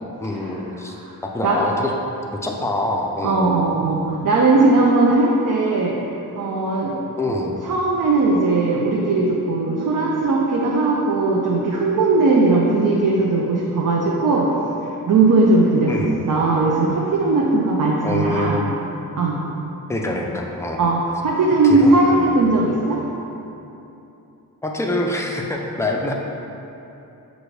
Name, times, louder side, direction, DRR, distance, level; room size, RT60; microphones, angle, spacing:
voice 1, 0.2-1.0 1.2-1.9 2.3-3.5 7.2-7.6 15.9-16.2 18.0-18.7 19.9-20.8 21.6-22.3 24.6-26.1, left 2 dB, 10° left, 0 dB, 0.3 m, -25 dB
voice 2, 3.2-6.0 6.3-7.0 7.7-14.6 14.8-15.9 16.3-18.7 19.2-19.4 20.8-23.0, right 3 dB, 60° right, -3 dB, 0.5 m, -18 dB
6.1 x 2.6 x 3.2 m, 2.9 s
wide cardioid pair, 100°, 36 cm